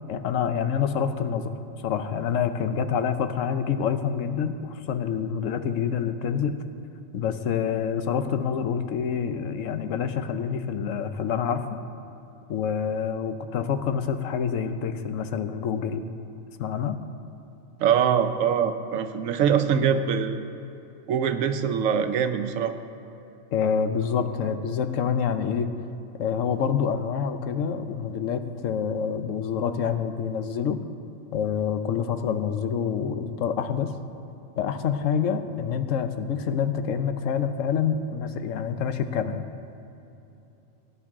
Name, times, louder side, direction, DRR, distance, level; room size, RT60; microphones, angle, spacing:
voice 1, 0.1-1.5 1.8-6.6 7.1-11.8 12.5-16.0 16.6-17.0 19.9-20.0 23.5-25.7 26.2-30.8 31.3-34.0 34.6-39.4, left 7 dB, 80° left, 9 dB, 1.1 m, -27 dB
voice 2, 17.8-20.4 21.1-22.7, right 7 dB, 90° right, 8 dB, 1.0 m, -23 dB
18.0 x 9.9 x 3.7 m, 2.9 s
omnidirectional pair, 1.3 m